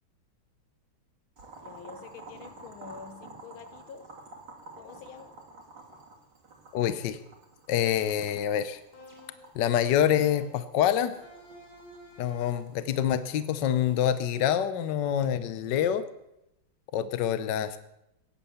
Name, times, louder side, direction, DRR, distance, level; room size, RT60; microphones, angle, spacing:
Boiling, 1.4-14.6, right 3 dB, 55° right, 3.4 m, -51 dB
voice 1, 1.6-4.1 4.8-5.3, left 6 dB, 85° left, 1.9 m, -46 dB
voice 2, 6.7-7.2 7.7-8.8 9.5-11.2 12.2-16.0 16.9-17.8, left 10 dB, 65° left, 1.4 m, -26 dB
sound 1, 7.8-8.5 8.9-9.6 10.0-10.7 11.1-12.7, left 1 dB, 45° left, 3.6 m, -51 dB
16.5 x 10.5 x 7.1 m
omnidirectional pair, 2.2 m